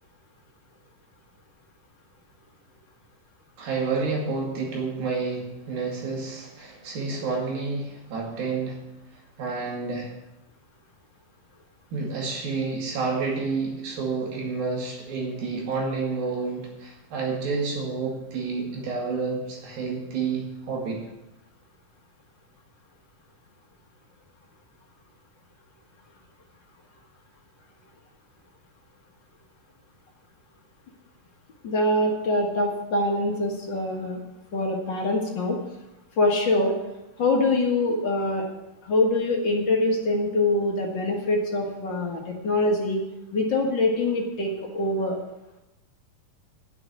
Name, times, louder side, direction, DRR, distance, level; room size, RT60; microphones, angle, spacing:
voice 1, 3.6-8.8 9.4-10.1 11.9-21.0, right 4 dB, 85° right, -1 dB, 4.2 m, -29 dB
voice 2, 31.6-34.2 34.5-35.6 36.2-36.7 37.2-38.5 38.8-43.0 43.3-45.2, left 2 dB, 45° left, 0 dB, 1.5 m, -24 dB
9.9 x 7.0 x 8.4 m, 0.93 s
omnidirectional pair, 4.0 m